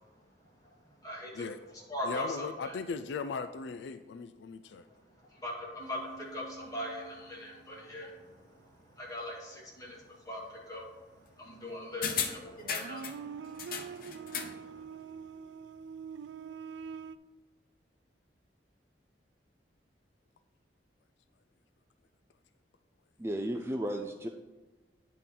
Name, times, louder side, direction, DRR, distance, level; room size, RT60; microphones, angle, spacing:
voice 1, 1.0-1.5 1.7-2.8 5.2-14.8, left 1 dB, 20° left, -5 dB, 2.4 m, -41 dB
voice 2, 2.0-4.9, left 4 dB, 75° left, 10 dB, 0.4 m, -38 dB
Duduk Armenian Sample Sound, 5.8-8.3 8.7-9.0 11.6-11.7 12.3-17.2, right 6 dB, 80° right, 0.4 m, -45 dB
sound 1, 12.0-13.2 13.6-14.6 14.9-15.0, left 7 dB, 55° left, 0.8 m, -35 dB
voice 3, 23.2-24.3, right 1 dB, 15° right, 4 dB, 0.4 m, -34 dB
9.8 x 3.7 x 5.9 m, 1.1 s
head